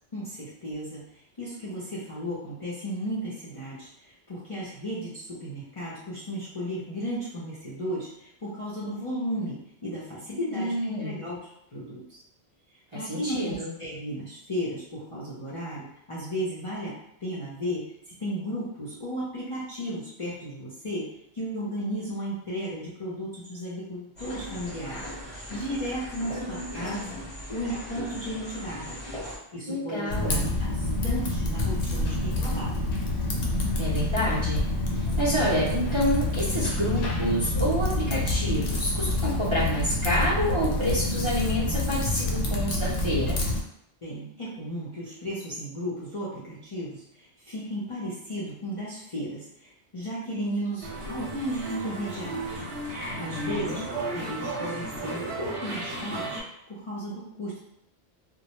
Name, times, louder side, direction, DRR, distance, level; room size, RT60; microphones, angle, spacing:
voice 1, 0.1-1.0 1.4-11.4 11.7-12.2 12.9-16.9 17.2-17.8 18.2-21.0 21.3-25.1 25.5-27.2 27.5-29.0 29.5-32.9 44.0-47.0 47.5-52.6 53.2-53.8 54.1-56.4 56.7-57.6, equal, 40° left, -8 dB, 0.6 m, -34 dB
voice 2, 10.5-11.2 12.9-13.7 26.3-27.2 29.7-30.5 33.8-34.6 34.9-43.4 53.2-53.8, equal, 35° right, -9 dB, 0.6 m, -28 dB
sound 1, 24.2-29.4, left 1 dB, 10° left, 0.8 m, -38 dB
Typing, 30.1-43.6, left 2 dB, 70° left, 0.7 m, -27 dB
sound 2, 50.8-56.4, right 2 dB, 65° right, 0.9 m, -34 dB
2.1 x 2.1 x 2.9 m, 0.77 s
omnidirectional pair, 1.1 m